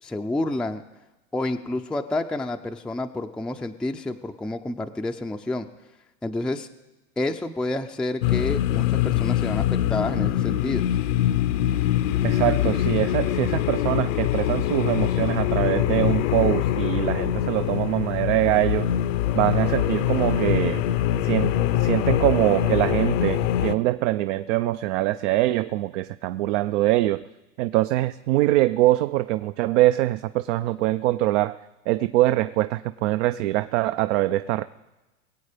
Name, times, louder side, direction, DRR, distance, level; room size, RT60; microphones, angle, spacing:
voice 1, 0.0-0.8 1.3-5.7 6.2-6.7 7.2-10.8, left 2 dB, ahead, 4 dB, 0.4 m, -29 dB
sound 1, 8.2-23.8, left 12 dB, 70° left, 0.8 m, -23 dB
voice 2, 12.2-18.9 19.3-20.8 21.2-21.5 21.8-27.2 27.6-31.6 31.9-34.6, right 16 dB, 65° right, 12 dB, 0.6 m, -23 dB
21.5 x 8.1 x 5.0 m, 1.1 s
supercardioid pair, 115°, 38 cm